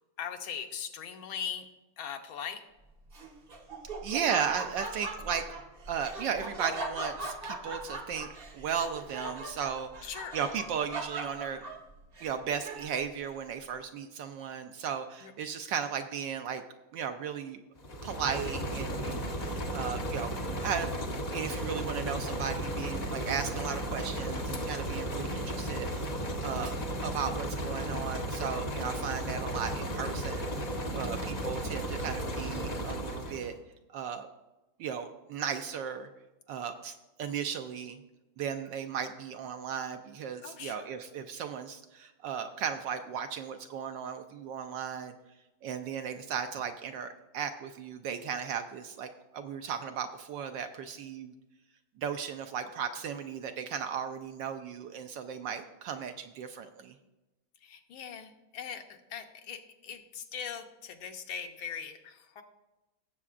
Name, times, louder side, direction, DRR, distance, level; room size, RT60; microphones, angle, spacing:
voice 1, 0.2-1.6 2.0-2.6 10.0-10.4 15.2-15.3 31.0-31.4 40.4-41.0 57.6-62.4, left 7 dB, 75° left, 5 dB, 1.6 m, -40 dB
Laughter, 3.1-13.1, right 2 dB, 50° right, 0.7 m, -40 dB
voice 2, 4.0-5.4 5.9-8.3 8.5-11.6 12.2-16.6 16.9-17.6 18.0-20.3 20.6-20.9 21.3-26.2 26.4-26.8 27.0-33.5 33.9-34.3 34.8-36.1 36.5-38.0 38.4-45.1 45.6-51.3 52.0-56.9, right 7 dB, 75° right, 7 dB, 1.1 m, -36 dB
sound 1, 17.8-33.6, right 1 dB, 50° left, 0.4 m, -34 dB
16.5 x 7.5 x 2.5 m, 1.0 s
omnidirectional pair, 2.3 m